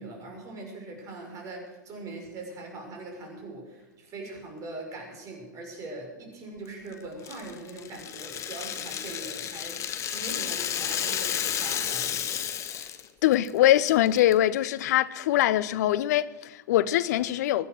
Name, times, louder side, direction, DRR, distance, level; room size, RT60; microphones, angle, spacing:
voice 1, 0.0-9.8 10.1-12.4, right 2 dB, 35° right, 6.3 m, -41 dB
Rattle (instrument), 7.2-13.1 13.3-13.5 13.9-14.3, left 9 dB, 30° left, 1.4 m, -32 dB
voice 2, 13.2-17.7, left 13 dB, 60° left, 0.8 m, -23 dB
22.0 x 9.7 x 6.4 m
hypercardioid pair, 105°, 10 cm